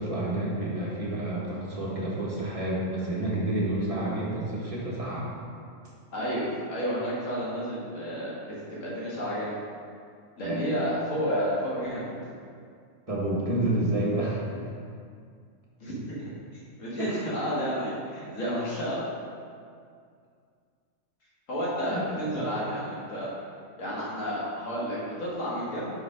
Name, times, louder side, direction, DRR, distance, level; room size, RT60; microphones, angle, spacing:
voice 1, 0.0-5.3 10.4-10.7 13.1-14.7 17.0-17.4 21.9-22.0 22.3-22.6, right 1 dB, 30° right, -5 dB, 1.3 m, -29 dB
voice 2, 6.1-8.3 8.7-9.5 10.4-12.1 15.8-16.3 16.8-19.0 21.5-23.3 23.8-25.9, equal, 75° left, -7 dB, 2.0 m, -31 dB
5.1 x 4.9 x 4.8 m, 2.2 s
omnidirectional pair, 1.4 m